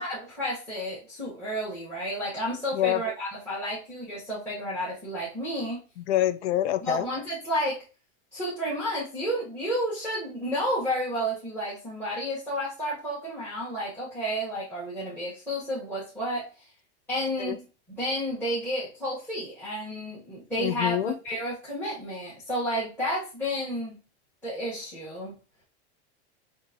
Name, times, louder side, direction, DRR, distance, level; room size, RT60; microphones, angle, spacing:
voice 1, 0.0-5.8 6.8-7.8 8.3-16.5 17.1-17.6 18.0-24.0 24.4-25.3, equal, 5° left, 0.9 m, -31 dB
voice 2, 6.1-7.1 17.4-17.6 20.6-21.1, left 13 dB, 85° left, 0.5 m, -26 dB
4.6 x 2.8 x 2.6 m
supercardioid pair, 170°, 34 cm